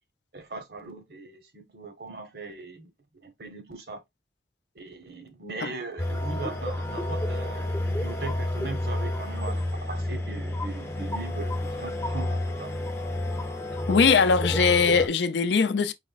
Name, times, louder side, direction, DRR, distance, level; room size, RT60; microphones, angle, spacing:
voice 1, 0.3-2.9 3.2-4.0 4.7-12.8, right 3 dB, 60° right, 1.0 m, -39 dB
sound 1, 6.0-15.1, left 1 dB, 15° left, 0.6 m, -30 dB
voice 2, 13.9-15.9, left 5 dB, 80° left, 0.5 m, -21 dB
4.9 x 3.0 x 2.4 m
head